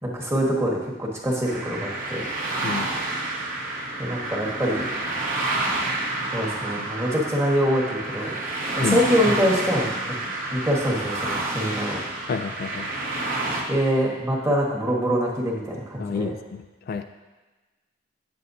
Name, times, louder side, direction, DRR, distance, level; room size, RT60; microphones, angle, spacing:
voice 1, 0.0-2.2 4.0-4.9 6.3-8.4 8.7-10.1 10.5-12.0 13.7-16.3, equal, 15° right, -3 dB, 1.4 m, -24 dB
sound 1, 1.5-13.6, right 2 dB, 45° right, 1.2 m, -29 dB
voice 2, 12.3-12.9 16.0-17.0, left 5 dB, 50° left, 8 dB, 0.3 m, -29 dB
9.7 x 7.5 x 2.7 m, 1.2 s
head